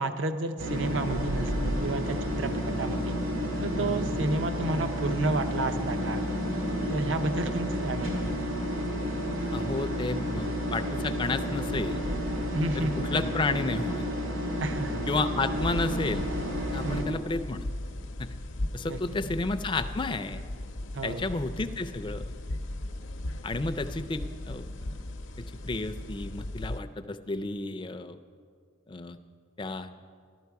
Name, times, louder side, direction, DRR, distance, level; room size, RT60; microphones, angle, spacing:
voice 1, 0.0-3.2 3.6-6.2 6.9-8.3 12.5-13.3 14.6-15.1 16.8-17.2 18.8-19.3 20.9-21.3, right 2 dB, 60° right, 9 dB, 0.6 m, -31 dB
sound 1, 0.6-17.0, equal, 80° right, 2.1 m, -31 dB
voice 2, 9.5-12.0 12.8-14.0 15.1-16.3 16.7-17.7 18.2-18.3 18.7-20.4 21.0-22.3 23.4-24.9 25.4-28.2 28.9-29.2 29.6-29.9, left 3 dB, 25° left, 10 dB, 0.4 m, -32 dB
sound 2, 15.5-26.8, left 1 dB, 65° left, 0.7 m, -37 dB
14.0 x 12.0 x 4.7 m, 2.1 s
head